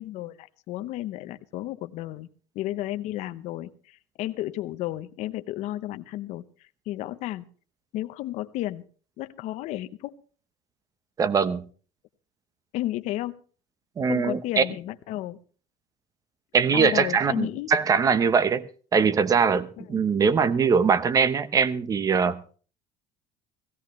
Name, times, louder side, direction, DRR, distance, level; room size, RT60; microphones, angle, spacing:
voice 1, 0.0-2.3 2.5-6.4 6.9-7.4 7.9-8.8 9.2-10.1 12.7-13.3 14.1-15.4 16.7-17.7 19.8-20.0, left 15 dB, 60° left, 10 dB, 0.8 m, -33 dB
voice 2, 11.2-11.6 14.0-14.6 16.5-18.7 18.9-22.4, right 6 dB, 25° right, 15 dB, 0.9 m, -22 dB
17.0 x 16.5 x 3.1 m, 0.39 s
cardioid pair, 140°, 13 cm